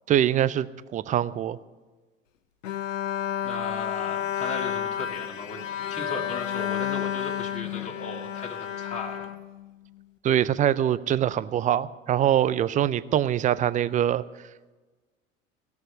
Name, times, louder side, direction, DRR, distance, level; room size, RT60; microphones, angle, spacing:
voice 1, 0.1-0.7 0.9-1.6 10.2-14.2, right 11 dB, 20° right, 17 dB, 0.4 m, -23 dB
Bowed string instrument, 2.6-10.0, left 10 dB, 80° left, 0.7 m, -31 dB
voice 2, 3.4-5.6 5.9-9.2, left 3 dB, 20° left, -2 dB, 2.1 m, -36 dB
16.5 x 6.5 x 9.1 m, 1.3 s
hypercardioid pair, 80°, 38 cm